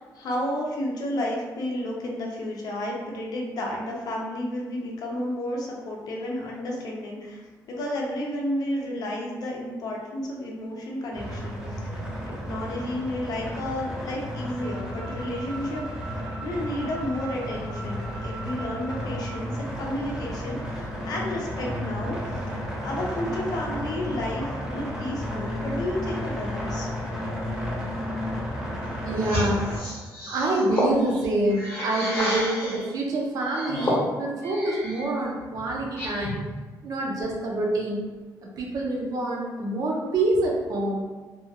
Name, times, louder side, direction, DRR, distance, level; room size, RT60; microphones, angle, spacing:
voice 1, 0.0-7.4 7.7-12.0 12.4-16.1 16.4-22.4 22.8-26.9, left 1 dB, 65° left, -2 dB, 0.6 m, -31 dB
sound 1, 11.1-29.8, equal, 10° right, 0.5 m, -33 dB
sound 2, 14.6-19.4, right 3 dB, 85° right, 1.2 m, -42 dB
voice 2, 29.0-29.7 30.3-36.4 36.8-38.1 38.4-41.0, right 2 dB, 55° right, -1 dB, 0.6 m, -26 dB
sound 3, 29.2-32.9 33.4-35.1 35.5-36.5, left 1 dB, 35° left, 0.9 m, -30 dB
2.7 x 2.3 x 2.7 m, 1.3 s
cardioid pair, 150°, 7 cm